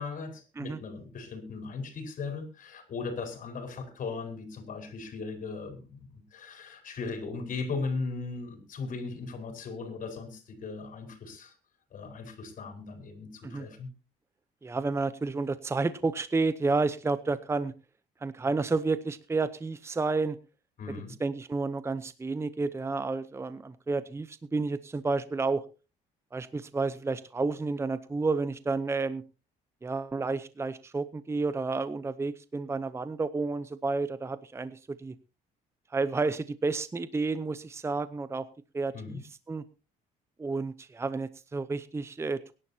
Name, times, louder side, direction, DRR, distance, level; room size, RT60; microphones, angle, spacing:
voice 1, 0.0-11.5 11.9-13.9 20.8-21.1 38.9-39.2, left 4 dB, 50° left, 5 dB, 5.1 m, -38 dB
voice 2, 14.6-17.7 18.2-20.4 21.2-25.6 26.3-29.2 29.8-35.1 35.9-38.5 38.7-39.2 39.5-39.6 40.4-42.5, right 3 dB, 15° right, 14 dB, 0.7 m, -30 dB
23.0 x 11.0 x 2.8 m, 0.32 s
cardioid pair, 110°, 17 cm